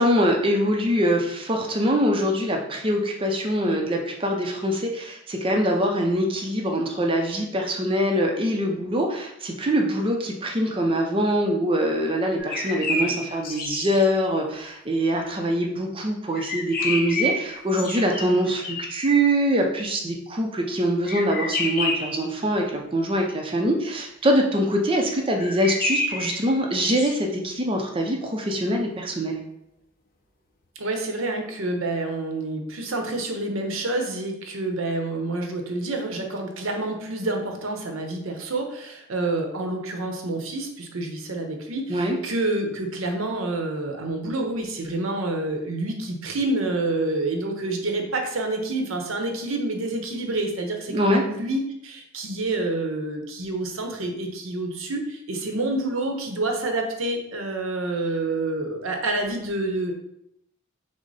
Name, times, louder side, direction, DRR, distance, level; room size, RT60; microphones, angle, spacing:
voice 1, 0.0-29.4 41.9-42.2 50.9-51.2, equal, 25° right, 1 dB, 0.5 m, -23 dB
sound 1, 12.4-14.1 16.3-19.0 21.1-22.3 25.4-27.2, left 2 dB, 45° left, 0.7 m, -29 dB
voice 2, 30.8-59.9, right 2 dB, 75° right, 3 dB, 0.8 m, -28 dB
6.2 x 2.1 x 4.0 m, 0.79 s
head